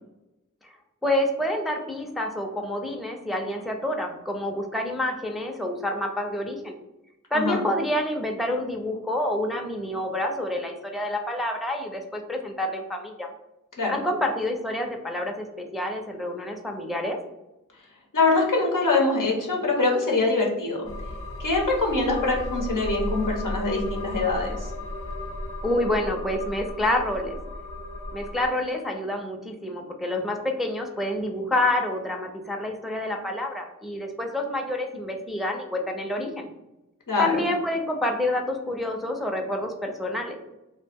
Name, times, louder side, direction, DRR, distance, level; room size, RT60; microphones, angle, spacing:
voice 1, 1.0-6.8 7.3-13.3 13.9-15.5 15.7-17.2 25.6-27.4 28.1-36.5 37.2-40.4, left 1 dB, ahead, 2 dB, 0.4 m, -28 dB
voice 2, 18.1-20.9 21.4-24.6 37.1-37.3, left 3 dB, 85° left, -1 dB, 0.8 m, -23 dB
sound 1, 20.8-28.5, left 1 dB, 45° left, 0.6 m, -34 dB
2.8 x 2.1 x 3.4 m, 0.95 s
cardioid pair, 40°, 31 cm